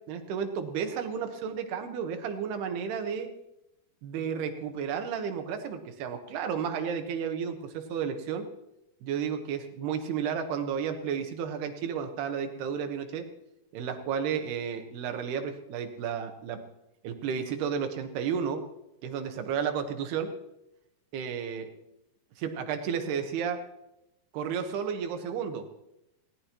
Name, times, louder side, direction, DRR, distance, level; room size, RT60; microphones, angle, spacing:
voice 1, 0.1-3.3 4.0-8.4 9.0-13.3 13.7-16.6 17.0-18.6 19.0-20.3 21.1-21.7 22.4-23.6 24.3-25.6, right 7 dB, 85° right, 6 dB, 3.3 m, -32 dB
19.5 x 17.5 x 3.0 m, 0.88 s
omnidirectional pair, 4.5 m